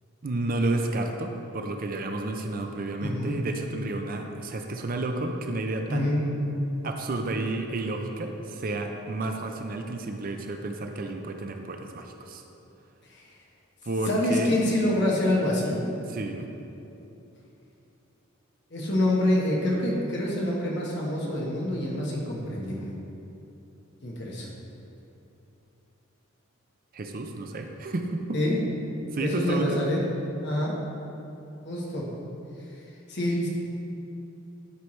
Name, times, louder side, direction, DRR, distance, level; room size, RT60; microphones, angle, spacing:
voice 1, 0.2-6.1 6.8-12.4 13.8-14.6 16.1-16.5 26.9-28.4 29.1-29.8, right 2 dB, 45° right, 4 dB, 0.5 m, -31 dB
voice 2, 3.0-3.3 5.9-6.2 13.1-13.2 14.1-15.8 18.7-22.9 24.0-24.5 28.3-28.6 29.2-30.0 30.4-30.7 31.6-32.1 33.1-33.5, left 1 dB, 55° left, -3 dB, 1.3 m, -26 dB
11.0 x 4.6 x 3.2 m, 2.9 s
head